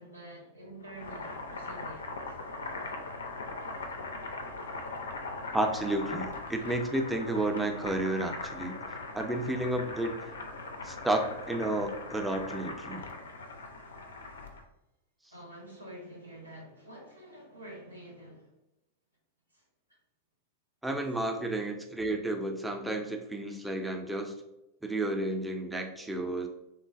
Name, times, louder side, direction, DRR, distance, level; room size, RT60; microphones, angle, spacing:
voice 1, 0.0-2.4 15.3-18.5 19.5-19.6, right 1 dB, 85° right, 0.7 m, -47 dB
Boiling, 0.8-14.6, left 3 dB, 70° left, 0.3 m, -40 dB
voice 2, 5.5-8.8 9.1-10.1 10.8-13.0 20.8-24.4 24.8-26.5, right 1 dB, 5° right, 0.4 m, -31 dB
3.2 x 2.1 x 2.4 m
figure-of-eight pair, 90°, 0 cm